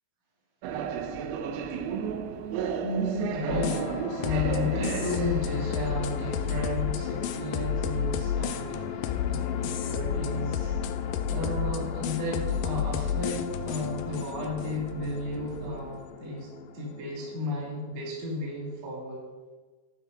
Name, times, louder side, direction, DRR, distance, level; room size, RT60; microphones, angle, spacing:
sound 1, 0.6-15.9, right 7 dB, 85° right, 2.4 m, -37 dB
voice 1, 2.8-10.8 11.3-16.5 16.7-19.2, left 1 dB, 50° right, -5 dB, 3.2 m, -33 dB
sound 2, 3.5-17.7, left 8 dB, 80° left, 2.1 m, -31 dB
12.0 x 10.5 x 2.7 m, 1.3 s
omnidirectional pair, 4.2 m